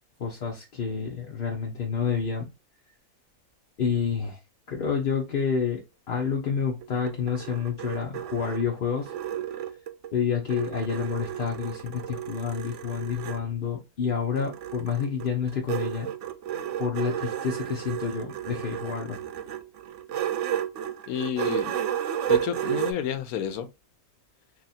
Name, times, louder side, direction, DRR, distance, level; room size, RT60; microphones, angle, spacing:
voice 1, 0.2-2.5 3.8-4.4 4.7-9.1 9.5-9.7 10.1-16.1 16.8-19.2, left 6 dB, 50° left, 0.6 m, -29 dB
sound 1, 6.8-10.1 10.5-13.4 14.4-22.9, right 10 dB, 65° right, 0.8 m, -32 dB
voice 2, 21.1-21.7 22.3-23.7, left 9 dB, 80° left, 1.1 m, -30 dB
2.9 x 2.7 x 4.0 m
omnidirectional pair, 1.6 m